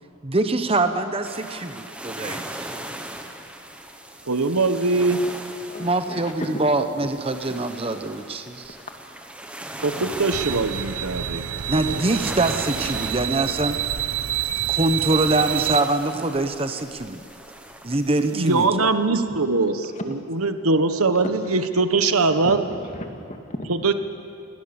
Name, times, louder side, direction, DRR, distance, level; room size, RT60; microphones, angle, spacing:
voice 1, 0.2-2.7 5.8-8.8 11.7-13.8 14.7-17.2 17.8-18.9, right 2 dB, 25° right, 8 dB, 0.9 m, -24 dB
sound 1, 1.2-18.7, right 1 dB, 5° right, 1.3 m, -38 dB
voice 2, 4.3-5.2 9.8-11.5 11.7-12.2 18.3-22.6 23.7-23.9, right 3 dB, 85° right, 9 dB, 1.4 m, -22 dB
voice 3, 5.7-6.5 8.7-8.8 22.3-23.7, left 1 dB, 35° left, 4 dB, 2.1 m, -36 dB
sound 2, 10.3-15.8, right 11 dB, 65° right, 0.5 m, -28 dB
27.5 x 20.5 x 7.1 m, 2.7 s
head